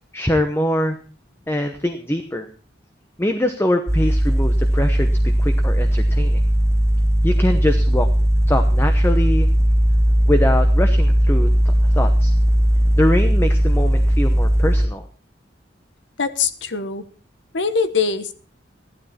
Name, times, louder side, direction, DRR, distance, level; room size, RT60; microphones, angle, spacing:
voice 1, 0.1-1.0 1.5-2.5 3.2-5.1 5.4-6.4 7.2-8.1 8.5-9.5 10.3-12.3 13.0-15.0, left 1 dB, 15° left, 7 dB, 0.9 m, -23 dB
sound 1, 3.9-14.9, equal, 15° right, 0.8 m, -17 dB
voice 2, 16.2-17.0 17.5-18.4, left 5 dB, 75° left, 12 dB, 1.2 m, -22 dB
15.0 x 12.0 x 4.3 m, 0.38 s
head